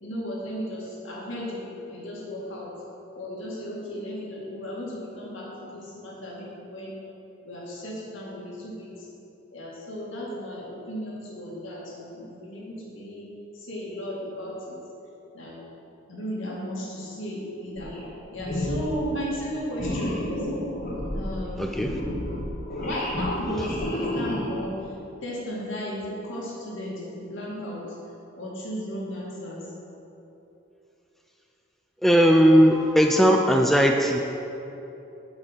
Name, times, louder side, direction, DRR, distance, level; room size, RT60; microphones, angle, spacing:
voice 1, 0.0-2.7 3.1-7.0 7.5-9.1 9.5-13.3 13.5-14.8 15.3-15.6 16.1-18.0 18.3-20.5 21.1-21.7 22.8-24.9 25.2-28.0 28.3-29.7, equal, 75° left, -4 dB, 2.2 m, -35 dB
sound 1, 17.8-18.1 18.4-19.0 19.8-24.7, left 1 dB, 45° left, 1.3 m, -31 dB
voice 2, 21.6-22.0 32.0-34.2, equal, ahead, 2 dB, 0.3 m, -18 dB
8.0 x 5.3 x 7.3 m, 3.0 s
head